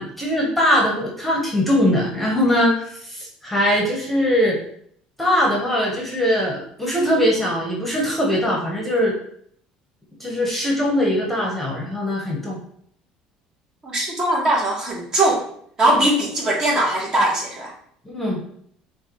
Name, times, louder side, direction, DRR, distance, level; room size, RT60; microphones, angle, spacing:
voice 1, 0.0-2.8 3.1-4.6 5.2-9.1 10.2-12.6 18.1-18.4, equal, 5° left, -2 dB, 1.0 m, -21 dB
voice 2, 13.8-15.4 15.8-17.7, right 1 dB, 30° right, -2 dB, 1.2 m, -20 dB
6.4 x 2.3 x 3.0 m, 0.64 s
cardioid pair, 135°, 2 cm